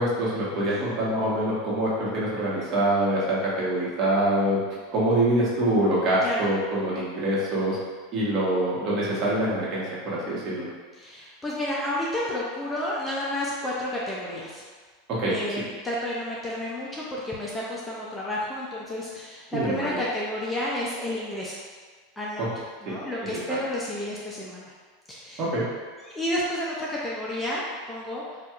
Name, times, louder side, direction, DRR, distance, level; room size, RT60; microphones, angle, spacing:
voice 1, 0.0-4.6 4.9-7.8 8.1-10.7 15.2-15.3 19.5-19.8 22.4-22.5 22.9-23.0 23.5-23.6 25.4-25.6, right 1 dB, 40° right, -6 dB, 1.1 m, -25 dB
voice 2, 10.9-14.6 15.3-21.6 22.2-22.4 22.8-24.7 25.1-25.4 26.0-27.6 27.9-28.2, left 1 dB, 10° left, -6 dB, 0.5 m, -31 dB
4.3 x 2.4 x 2.4 m, 1.5 s
supercardioid pair, 135°, 0 cm